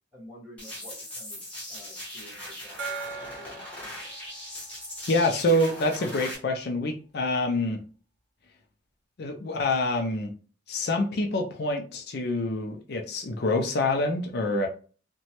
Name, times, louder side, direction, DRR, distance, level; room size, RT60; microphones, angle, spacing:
voice 1, 0.1-1.4 1.7-4.1, left 1 dB, 10° right, -4 dB, 1.4 m, -50 dB
sound 1, 0.6-6.3, left 1 dB, 5° left, 1.0 m, -40 dB
Gong, 2.8-6.0, right 4 dB, 75° right, 0.7 m, -41 dB
voice 2, 5.1-7.8 9.2-10.3 10.7-14.7, left 2 dB, 60° left, 3 dB, 0.4 m, -26 dB
2.9 x 2.2 x 2.9 m, 0.39 s
head